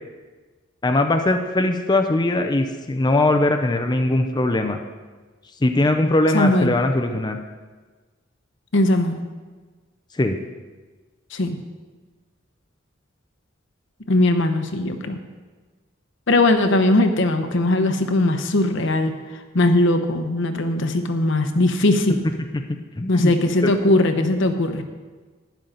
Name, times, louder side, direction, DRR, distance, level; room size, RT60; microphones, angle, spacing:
voice 1, 0.8-4.8 5.6-7.4 10.1-10.4 22.7-23.3 23.6-23.7, left 2 dB, 20° left, 5 dB, 0.5 m, -20 dB
voice 2, 6.3-6.7 8.7-9.2 11.3-11.6 14.1-15.2 16.3-19.1 19.5-22.2 23.1-24.8, left 2 dB, 65° left, 7 dB, 0.9 m, -19 dB
11.5 x 10.5 x 3.9 m, 1.4 s
head